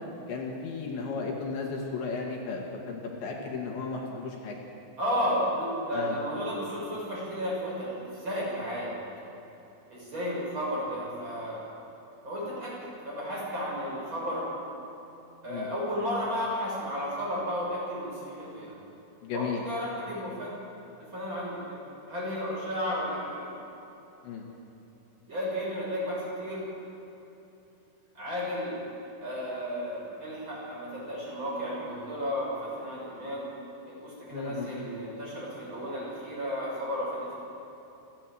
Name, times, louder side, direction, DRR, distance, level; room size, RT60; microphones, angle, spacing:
voice 1, 0.3-4.6 5.9-6.2 15.5-15.7 19.2-19.6 24.2-24.4 34.3-34.9, left 4 dB, 70° left, -1 dB, 4.1 m, -34 dB
voice 2, 5.0-8.9 9.9-11.6 12.2-12.8 13.0-14.5 15.4-18.8 19.3-20.5 21.1-21.8 22.1-23.4 25.3-26.7 28.1-28.8 29.2-33.5 33.8-37.4, equal, 25° right, -6 dB, 7.2 m, -33 dB
28.5 x 13.0 x 7.7 m, 3.0 s
omnidirectional pair, 5.6 m